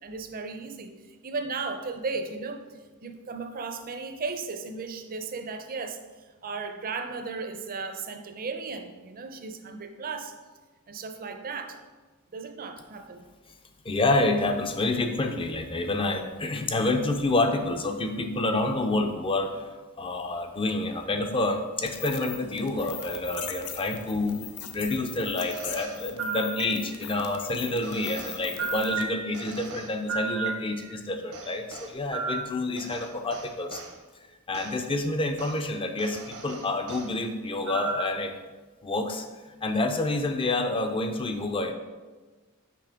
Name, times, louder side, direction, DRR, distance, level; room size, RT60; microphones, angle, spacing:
voice 1, 0.0-0.9 1.2-2.6 3.0-6.0 6.4-10.4 10.9-11.8 12.3-13.2, right 4 dB, 40° right, 6 dB, 0.6 m, -35 dB
voice 2, 13.8-19.7 20.0-24.4 24.7-33.8 34.5-38.3 38.8-39.2 39.6-41.7, left 2 dB, 25° left, 6 dB, 0.5 m, -28 dB
sound 1, 21.9-29.1, left 8 dB, 85° left, 0.6 m, -40 dB
sound 2, 25.4-27.1 27.8-31.0 31.3-33.9 34.5-34.7 35.4-35.6 36.0-37.1 37.7-38.3, right 4 dB, 80° right, 0.9 m, -35 dB
6.0 x 5.2 x 3.5 m, 1.3 s
head